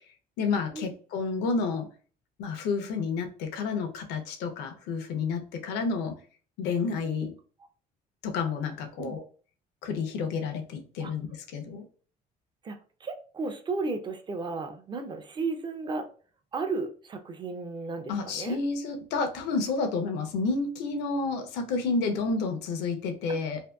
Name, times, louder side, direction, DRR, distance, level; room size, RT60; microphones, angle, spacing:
voice 1, 0.4-1.9 2.4-6.1 6.6-7.3 8.2-9.2 9.8-11.8 18.1-23.6, left 4 dB, 85° left, 5 dB, 0.6 m, -30 dB
voice 2, 12.6-16.1 16.5-18.6 23.3-23.4, right 3 dB, 25° right, 6 dB, 0.4 m, -34 dB
2.6 x 2.5 x 2.2 m, 0.41 s
cardioid pair, 110°, 17 cm